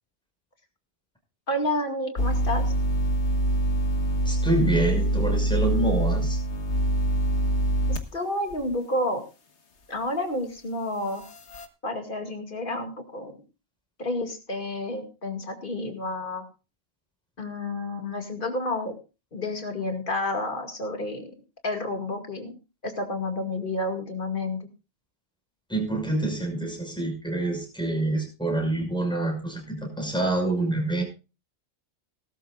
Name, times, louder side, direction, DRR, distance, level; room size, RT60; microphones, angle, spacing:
voice 1, 1.5-2.7 7.9-9.2 9.9-11.2 11.8-13.4 14.0-16.5 17.4-18.9 19.3-21.3 21.6-22.5 22.8-24.6, left 1 dB, 45° left, 5 dB, 2.3 m, -30 dB
sound 1, 2.2-8.0 8.5-8.6 11.3-11.7, right 1 dB, 70° left, 1.7 m, -24 dB
voice 2, 4.3-6.4 25.7-31.0, right 2 dB, 5° left, 1 dB, 5.8 m, -26 dB
19.0 x 13.0 x 2.4 m, 0.30 s
omnidirectional pair, 1.2 m